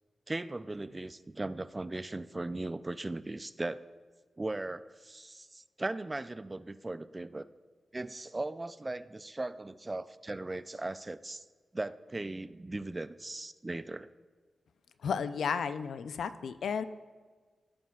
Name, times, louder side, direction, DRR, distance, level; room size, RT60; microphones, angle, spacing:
voice 1, 0.3-3.8 4.4-7.5 7.9-11.4 11.7-14.1, right 2 dB, 25° right, 14 dB, 0.4 m, -38 dB
voice 2, 15.0-16.8, left 6 dB, 85° left, 12 dB, 0.4 m, -33 dB
17.5 x 9.2 x 2.4 m, 1.4 s
cardioid pair, 55°, 0 cm